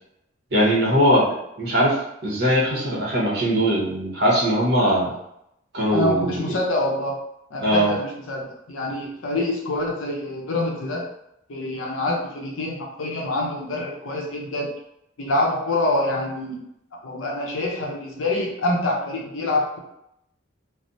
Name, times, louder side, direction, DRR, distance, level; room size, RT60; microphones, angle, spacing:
voice 1, 0.5-1.3 1.6-2.0 2.2-5.1 5.7-6.4 7.6-7.9, equal, 55° right, -4 dB, 1.0 m, -20 dB
voice 2, 5.9-7.2 7.5-11.1 11.5-14.7 15.2-16.6 17.0-19.8, left 1 dB, 85° left, -1 dB, 0.7 m, -26 dB
3.2 x 2.0 x 2.6 m, 0.79 s
head